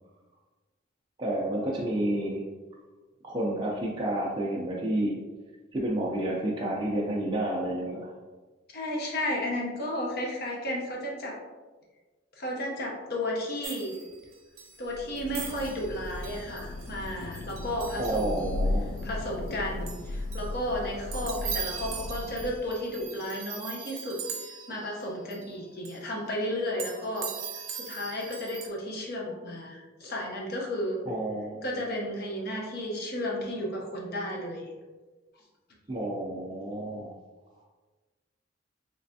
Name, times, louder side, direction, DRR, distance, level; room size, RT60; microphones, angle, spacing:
voice 1, 1.2-2.5 3.2-5.2 5.7-8.1 18.0-18.9 31.1-31.7 35.9-37.1, right 1 dB, 25° right, -4 dB, 0.4 m, -30 dB
voice 2, 8.7-11.4 12.4-13.9 14.8-18.5 19.0-31.0 31.6-34.7, left 1 dB, 50° left, -1 dB, 0.8 m, -33 dB
sound 1, 13.6-14.9 15.2-18.6 19.0-19.1 19.4-19.5 19.9-20.5 20.8-25.0 25.3-25.6 25.9-26.0 26.8-28.7, right 7 dB, 80° right, 0.6 m, -40 dB
Thunder / Rain, 14.8-22.9, left 2 dB, 85° left, 0.3 m, -35 dB
3.3 x 3.2 x 2.6 m, 1.3 s
head